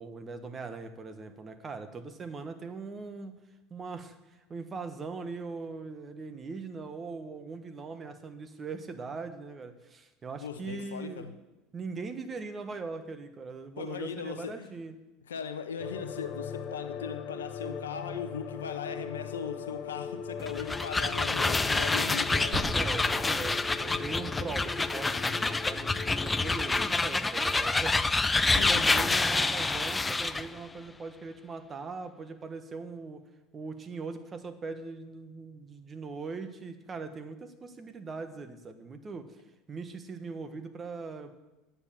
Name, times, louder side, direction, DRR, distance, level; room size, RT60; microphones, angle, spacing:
voice 1, 0.0-3.4 3.7-11.3 11.7-14.9 22.7-28.2 28.5-33.2 33.5-41.4, right 4 dB, 30° right, 9 dB, 1.3 m, -40 dB
voice 2, 10.4-11.3 13.8-14.7 15.3-22.7 28.6-29.2 29.6-29.8, left 6 dB, 90° left, 9 dB, 0.9 m, -39 dB
sound 1, 15.8-26.9, left 6 dB, 55° left, 0.9 m, -40 dB
sound 2, 20.4-30.5, left 3 dB, 15° left, 0.5 m, -27 dB
sound 3, 22.5-26.5, right 4 dB, 65° right, 1.7 m, -45 dB
9.6 x 6.9 x 7.4 m, 1.0 s
hypercardioid pair, 80°, 0 cm